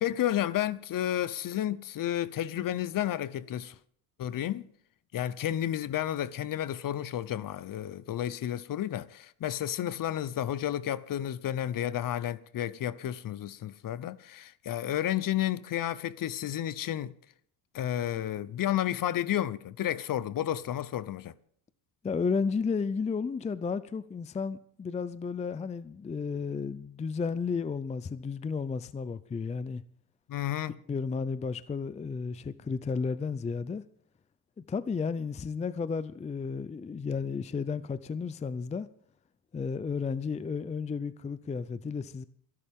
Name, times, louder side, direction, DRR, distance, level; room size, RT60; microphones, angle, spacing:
voice 1, 0.0-3.8 4.2-4.6 5.1-17.1 17.7-21.3 30.3-30.7, left 12 dB, 50° left, 0.9 m, -31 dB
voice 2, 22.0-29.8 30.9-33.8 34.7-38.9 39.5-42.2, left 5 dB, 15° left, 0.5 m, -33 dB
27.0 x 11.0 x 3.7 m
cardioid pair, 115°, 44 cm